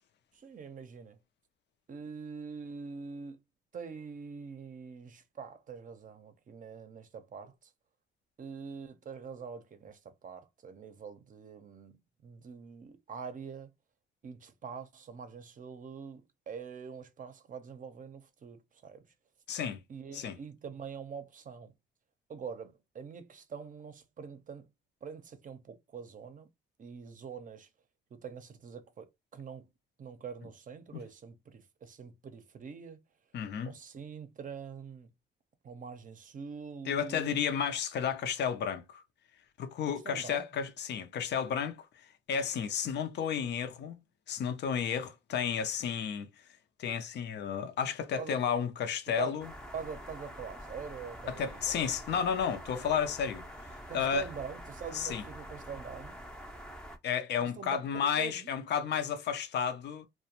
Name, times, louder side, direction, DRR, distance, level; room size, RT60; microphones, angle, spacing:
voice 1, 0.3-1.2 1.9-3.4 3.7-7.7 8.4-13.7 14.2-16.2 16.5-19.0 19.9-21.7 22.3-24.7 25.0-26.5 26.8-27.7 28.1-29.1 29.3-29.7 30.0-33.0 33.7-35.1 35.6-37.4 39.9-40.5 48.2-48.4 49.1-49.4 49.7-51.8 53.9-56.2 57.4-57.8 58.1-58.5, right 6 dB, 40° right, 0.6 m, -44 dB
voice 2, 19.5-19.8 20.1-20.4 33.3-33.7 36.9-39.0 39.6-41.8 42.3-44.0 44.3-46.3 46.8-49.5 51.3-53.5 53.9-54.2 54.9-55.2 57.0-60.1, left 7 dB, 60° left, 0.5 m, -32 dB
sound 1, 49.4-57.0, equal, 5° left, 0.5 m, -46 dB
2.4 x 2.1 x 2.8 m
cardioid pair, 90°, 20 cm